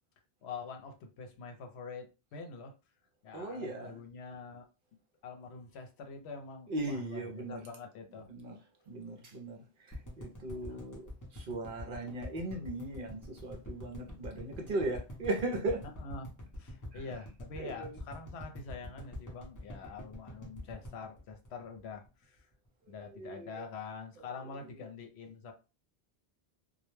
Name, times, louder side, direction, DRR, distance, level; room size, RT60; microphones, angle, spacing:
voice 1, 0.4-2.7 3.2-4.6 5.2-8.3 10.7-10.8 16.0-22.5 22.9-25.5, left 4 dB, 75° left, 0.8 m, -45 dB
voice 2, 3.3-4.0 6.7-7.6 8.3-8.6 8.9-9.6 9.8-15.8 16.9-17.0 17.6-17.9 23.2-23.6, right 2 dB, 60° right, 0.7 m, -38 dB
sound 1, 9.9-22.1 22.4-22.5 22.7-22.8, left 1 dB, 25° left, 0.5 m, -45 dB
2.2 x 2.1 x 3.0 m
omnidirectional pair, 1.1 m